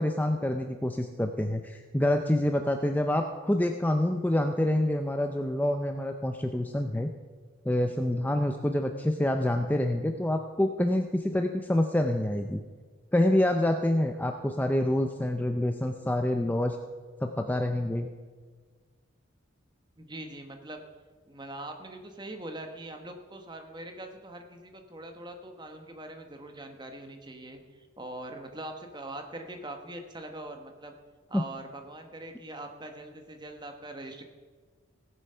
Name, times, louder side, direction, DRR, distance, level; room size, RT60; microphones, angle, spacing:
voice 1, 0.0-7.1 7.7-12.6 13.1-16.8 17.2-18.1 31.3-31.4, left 1 dB, 10° left, 5 dB, 0.4 m, -27 dB
voice 2, 20.0-20.8 21.3-30.9 31.3-34.2, right 1 dB, 20° right, 5 dB, 1.1 m, -42 dB
17.0 x 7.7 x 5.6 m, 1.5 s
head